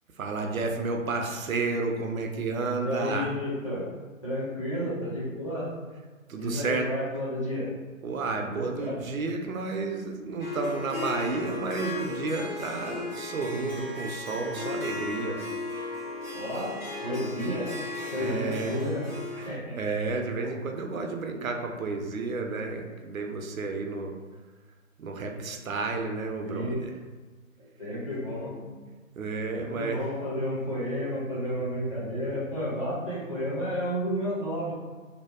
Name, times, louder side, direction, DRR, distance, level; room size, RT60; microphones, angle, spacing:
voice 1, 0.2-3.3 6.3-6.9 8.0-15.4 18.2-18.8 19.4-24.2 25.0-26.9 29.2-30.0, right 3 dB, 80° right, 3 dB, 0.5 m, -31 dB
voice 2, 2.8-3.9 4.2-5.7 6.4-7.7 8.4-9.0 16.3-16.8 17.0-17.7 18.1-19.8 26.4-26.8 27.6-28.8 29.5-34.7, equal, 25° left, -10 dB, 0.5 m, -32 dB
Harp, 10.4-19.5, left 2 dB, 85° left, 1.3 m, -36 dB
2.7 x 2.0 x 2.3 m, 1.4 s
figure-of-eight pair, 140°, 40 cm